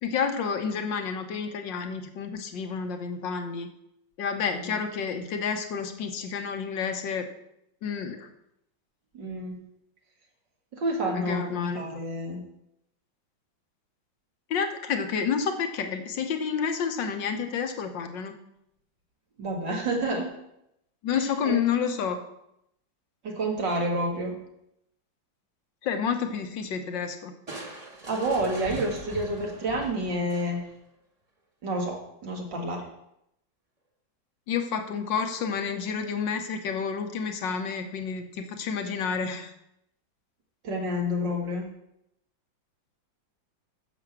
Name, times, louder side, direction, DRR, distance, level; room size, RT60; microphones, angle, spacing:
voice 1, 0.0-3.7 4.2-7.3 7.8-8.3 11.2-11.8 14.5-18.3 21.0-22.2 25.8-27.3 34.5-39.5, left 6 dB, 75° left, 7 dB, 1.7 m, -30 dB
voice 2, 9.1-9.6 10.7-12.4 19.4-20.3 21.1-21.6 23.2-24.4 28.1-30.6 31.6-32.9 40.6-41.7, right 1 dB, 65° right, 0 dB, 2.5 m, -29 dB
Crushing, 27.5-30.8, right 1 dB, 20° right, 1.4 m, -41 dB
10.0 x 7.1 x 6.0 m, 0.79 s
omnidirectional pair, 2.1 m